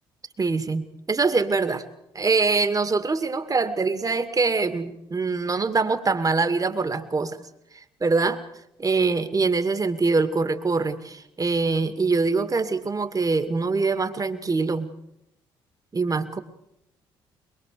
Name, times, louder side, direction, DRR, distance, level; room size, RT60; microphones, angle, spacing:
voice 1, 0.4-1.8 2.1-7.4 7.7-8.4 8.8-14.9 15.9-16.4, right 4 dB, 30° right, 9 dB, 2.2 m, -24 dB
22.5 x 22.0 x 6.9 m, 0.81 s
hypercardioid pair, 50°, 12 cm